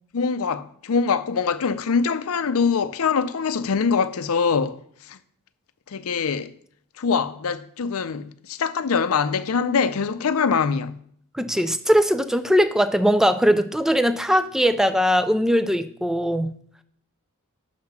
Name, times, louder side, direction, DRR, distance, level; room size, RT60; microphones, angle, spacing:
voice 1, 0.1-4.8 5.1-5.2 5.9-6.5 7.0-11.0, left 5 dB, 70° left, 0.5 m, -23 dB
voice 2, 11.3-16.5, equal, ahead, 0.3 m, -20 dB
6.4 x 5.8 x 5.9 m
head